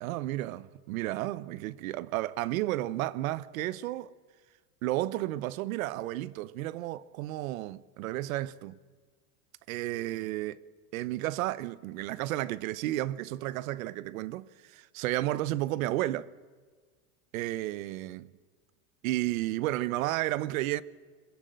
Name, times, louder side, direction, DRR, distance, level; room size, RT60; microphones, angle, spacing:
voice 1, 0.0-4.1 4.8-8.8 9.7-10.6 10.9-16.3 17.3-18.3 19.0-20.8, right 16 dB, 70° right, 1.0 m, -32 dB
22.5 x 21.5 x 7.7 m
supercardioid pair, 175°, 43 cm